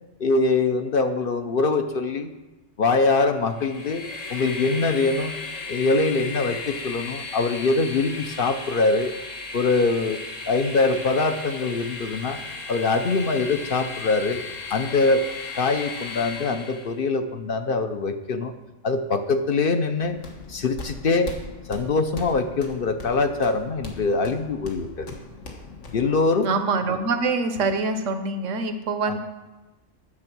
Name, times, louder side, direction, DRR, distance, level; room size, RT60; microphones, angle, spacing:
voice 1, 0.2-2.3 2.8-4.0 4.3-5.4 5.7-9.1 9.5-10.2 10.5-12.4 12.7-14.4 14.7-15.3 15.6-18.5 18.8-20.2 20.5-21.3 21.7-25.1 25.9-26.5 29.1-29.2, left 3 dB, 55° left, 7 dB, 0.8 m, -23 dB
Train, 3.5-17.0, left 3 dB, 90° left, 1.7 m, -36 dB
sound 1, 20.0-26.3, left 3 dB, 70° left, 1.8 m, -40 dB
voice 2, 26.4-29.2, right 3 dB, 85° right, 8 dB, 1.2 m, -25 dB
9.7 x 7.1 x 6.0 m, 1.1 s
omnidirectional pair, 1.3 m